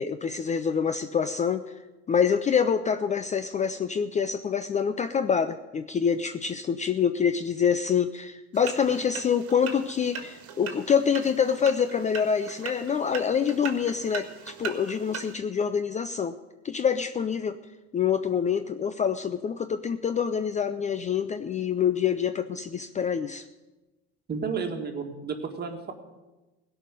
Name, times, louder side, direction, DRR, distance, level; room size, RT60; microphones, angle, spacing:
voice 1, 0.0-1.7 2.1-16.4 16.6-17.6 17.9-23.5, left 7 dB, 25° left, 11 dB, 0.5 m, -26 dB
sound 1, 8.5-15.3, right 6 dB, 50° right, 1.8 m, -40 dB
voice 2, 24.3-25.9, right 5 dB, 30° right, 4 dB, 1.9 m, -32 dB
16.5 x 5.6 x 9.0 m, 1.1 s
supercardioid pair, 100°, 31 cm